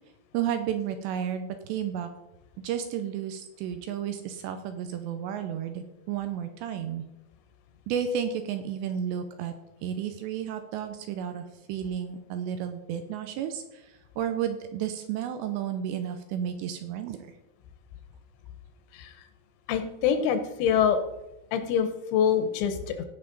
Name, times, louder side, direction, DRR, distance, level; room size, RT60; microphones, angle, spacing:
voice 1, 0.3-2.1 2.6-7.0 7.9-9.6 9.8-17.2, right 9 dB, 80° right, 8 dB, 2.6 m, -32 dB
voice 2, 19.7-21.0 21.5-23.0, left 8 dB, 80° left, 8 dB, 3.1 m, -25 dB
17.0 x 5.7 x 4.0 m, 0.93 s
omnidirectional pair, 5.7 m